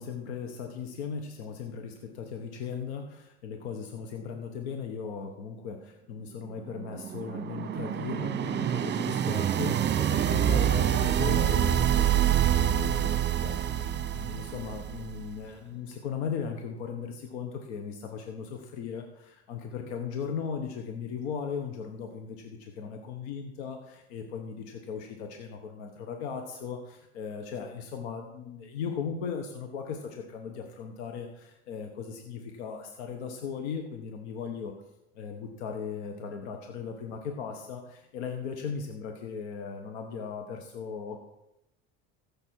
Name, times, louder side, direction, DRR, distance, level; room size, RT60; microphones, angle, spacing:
voice 1, 0.0-34.7 35.1-41.2, left 6 dB, 80° left, 4 dB, 1.5 m, -37 dB
sound 1, 6.4-15.3, right 10 dB, 35° right, 1.0 m, -27 dB
14.5 x 7.4 x 4.7 m, 0.85 s
hypercardioid pair, 80°, 33 cm